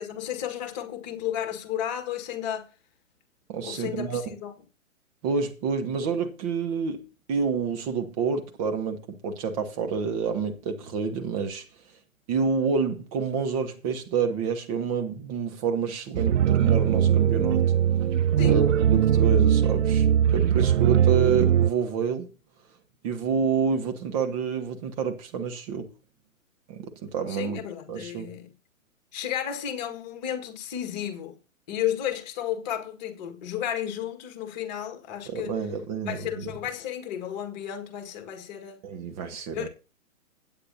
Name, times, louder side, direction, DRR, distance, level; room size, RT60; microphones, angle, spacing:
voice 1, 0.0-2.7 3.6-4.5 18.4-18.6 27.3-28.5 29.1-31.3 31.7-35.6 36.1-38.8 39.5-39.7, left 10 dB, 30° left, 1.8 m, -33 dB
voice 2, 3.5-4.3 5.2-11.6 12.3-17.6 18.4-20.1 20.3-22.3 23.0-25.9 26.7-27.6 27.9-28.3 35.3-36.5 38.8-39.7, right 6 dB, 25° right, 1.2 m, -28 dB
sound 1, 16.1-21.7, right 9 dB, 60° right, 0.5 m, -21 dB
16.5 x 8.9 x 2.8 m
figure-of-eight pair, 125°, 41 cm